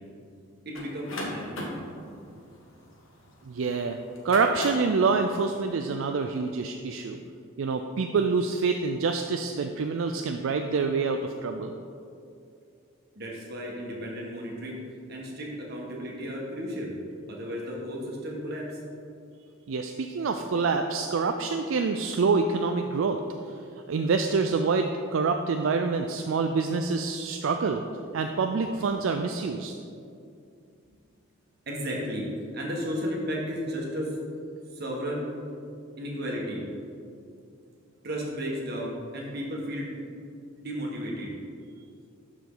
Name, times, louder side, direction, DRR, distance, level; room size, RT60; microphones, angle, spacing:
sound 1, 0.7-3.5 4.1-5.0, left 1 dB, 75° left, 1.4 m, -36 dB
voice 1, 0.7-1.8 13.2-14.8 15.1-16.9 17.3-18.8 31.7-34.1 34.7-35.3 36.0-36.6 38.0-40.0 40.6-41.3, equal, 50° right, -2 dB, 1.6 m, -34 dB
voice 2, 3.5-4.0 4.2-7.2 7.6-11.7 19.7-23.5 23.9-27.8 28.1-29.7, right 4 dB, 70° right, 5 dB, 0.4 m, -26 dB
12.0 x 4.9 x 3.9 m, 2.5 s
head